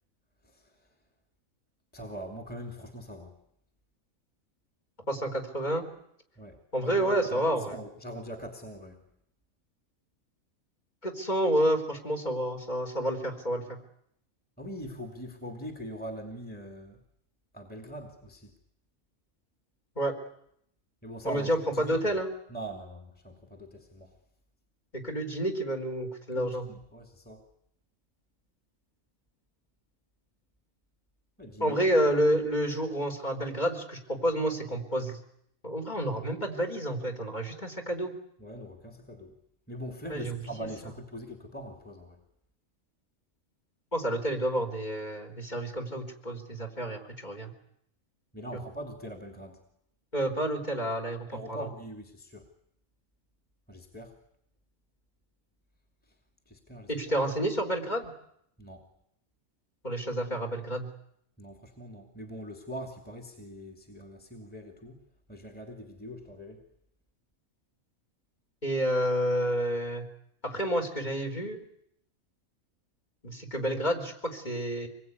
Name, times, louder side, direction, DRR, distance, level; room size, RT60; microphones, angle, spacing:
voice 1, 1.9-3.4 6.4-9.0 14.6-17.0 17.5-18.5 21.0-22.2 22.5-24.1 26.3-27.4 31.4-31.9 38.4-39.3 39.7-42.2 48.3-49.6 51.3-52.5 53.7-54.2 56.5-56.9 58.6-58.9 61.4-65.0 65.3-66.6, equal, 5° left, 4 dB, 2.6 m, -42 dB
voice 2, 5.1-5.8 6.7-7.8 11.0-13.6 20.0-20.1 21.2-22.3 24.9-26.6 31.6-35.2 35.6-38.1 40.1-40.5 43.9-47.5 48.5-48.6 50.1-51.6 56.9-58.1 59.8-60.9 68.6-70.1 70.4-71.6 73.2-74.9, right 1 dB, 30° left, 4 dB, 4.0 m, -29 dB
26.0 x 21.5 x 9.6 m, 0.73 s
omnidirectional pair, 1.4 m